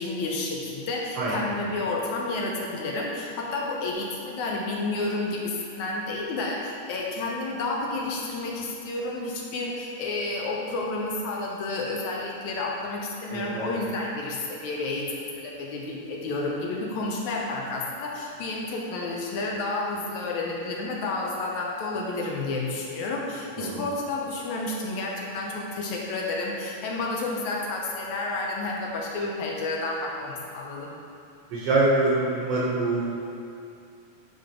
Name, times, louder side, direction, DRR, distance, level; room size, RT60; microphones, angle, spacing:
voice 1, 0.0-30.9, left 2 dB, 75° left, -2 dB, 2.0 m, -30 dB
voice 2, 1.2-1.5 13.3-13.8 23.6-23.8 31.5-33.2, right 2 dB, 65° right, -6 dB, 1.6 m, -25 dB
9.4 x 3.6 x 5.0 m, 2.6 s
omnidirectional pair, 3.7 m